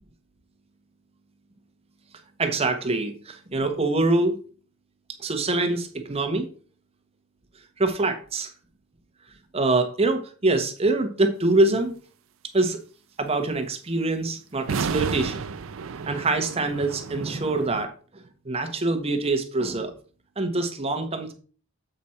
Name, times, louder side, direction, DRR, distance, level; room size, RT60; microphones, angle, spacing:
voice 1, 2.4-4.4 5.2-6.4 7.8-8.5 9.5-11.9 12.5-12.8 13.2-15.4 16.1-17.9 18.4-19.9 20.4-21.3, right 2 dB, 30° right, 6 dB, 0.9 m, -24 dB
sound 1, 14.6-17.9, right 5 dB, 75° right, 0.5 m, -31 dB
7.7 x 5.0 x 4.3 m, 0.39 s
head